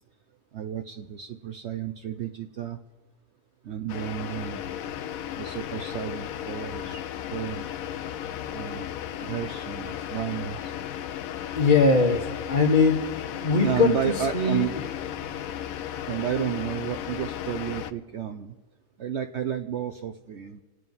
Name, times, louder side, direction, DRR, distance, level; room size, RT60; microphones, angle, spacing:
voice 1, 0.5-2.8 3.6-4.6 5.4-7.0 7.3-7.7 8.5-8.9 9.2-10.7 13.6-14.7 15.8-18.5 19.0-20.6, right 9 dB, 65° right, 7 dB, 0.6 m, -32 dB
sound 1, 3.9-17.9, left 10 dB, 65° left, 0.9 m, -35 dB
voice 2, 11.5-13.1 13.4-14.7, left 4 dB, 30° left, -1 dB, 1.4 m, -21 dB
27.5 x 9.3 x 5.4 m, 1.3 s
omnidirectional pair, 1.9 m